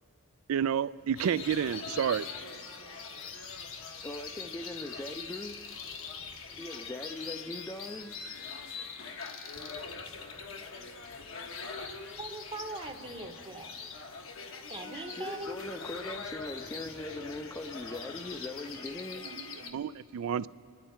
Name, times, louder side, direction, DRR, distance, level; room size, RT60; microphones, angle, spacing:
voice 1, 0.5-2.3 19.3-20.5, right 8 dB, 75° right, 0.3 m, -30 dB
sound 1, 0.9-19.6, left 1 dB, 90° left, 2.1 m, -56 dB
sound 2, 1.2-19.7, left 5 dB, 65° left, 1.0 m, -43 dB
voice 2, 4.0-5.8 6.5-8.2 15.2-19.3, left 1 dB, 15° left, 0.4 m, -41 dB
voice 3, 12.2-13.9 14.7-15.6, right 2 dB, 25° right, 0.7 m, -41 dB
28.0 x 11.0 x 4.3 m
head